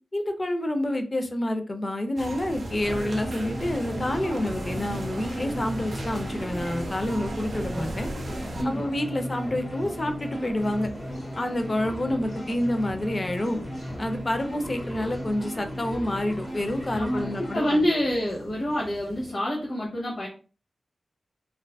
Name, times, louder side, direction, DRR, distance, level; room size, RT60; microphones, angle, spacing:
voice 1, 0.1-8.1 8.6-10.9 11.4-13.6 14.0-17.8, left 1 dB, 35° left, 6 dB, 0.4 m, -28 dB
sound 1, 2.2-8.6, right 1 dB, 55° right, 0.5 m, -35 dB
sound 2, 2.4-19.3, equal, 80° left, 1.4 m, -45 dB
sound 3, 2.8-17.7, equal, 10° left, 1.1 m, -36 dB
voice 2, 16.9-20.3, equal, 60° left, -5 dB, 0.8 m, -27 dB
2.4 x 2.2 x 2.2 m, 0.36 s
wide cardioid pair, 90°, 0 cm